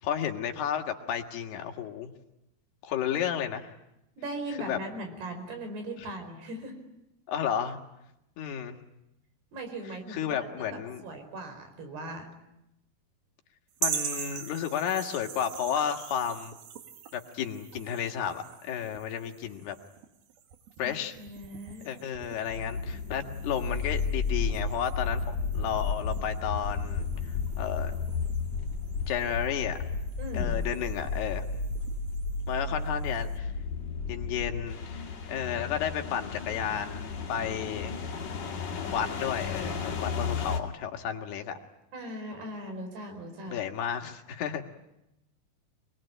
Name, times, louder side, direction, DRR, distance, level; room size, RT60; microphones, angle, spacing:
voice 1, 0.0-2.1 2.8-3.7 4.7-4.8 7.3-7.8 8.4-8.8 10.1-11.0 13.8-16.5 17.1-19.8 20.8-21.2 21.9-27.1 27.6-27.9 29.1-29.8 30.3-31.5 32.5-33.5 34.1-38.0 38.9-41.6 43.5-44.6, left 8 dB, 85° left, 5 dB, 3.8 m, -32 dB
voice 2, 4.2-6.7 9.5-12.3 20.8-22.0 30.2-30.6 37.8-38.5 41.9-43.6, right 1 dB, 90° right, 6 dB, 6.8 m, -40 dB
sound 1, 13.8-33.4, right 8 dB, 70° right, 3.6 m, -43 dB
sound 2, 22.4-40.6, left 4 dB, 45° left, 3.3 m, -33 dB
26.5 x 21.5 x 10.0 m, 0.87 s
omnidirectional pair, 4.5 m